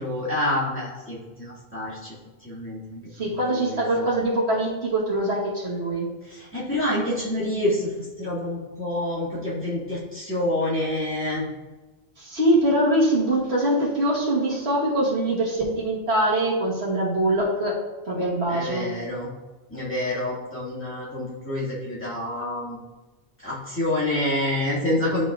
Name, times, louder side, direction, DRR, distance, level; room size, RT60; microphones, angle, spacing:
voice 1, 0.0-2.1 2.4-4.1 6.3-11.5 18.5-19.3 19.7-22.8 23.4-25.2, left 1 dB, 10° left, -8 dB, 1.8 m, -28 dB
voice 2, 3.2-6.1 12.2-17.8 18.1-18.9, right 1 dB, 70° right, -4 dB, 1.6 m, -23 dB
10.5 x 4.2 x 2.4 m, 1.2 s
omnidirectional pair, 1.1 m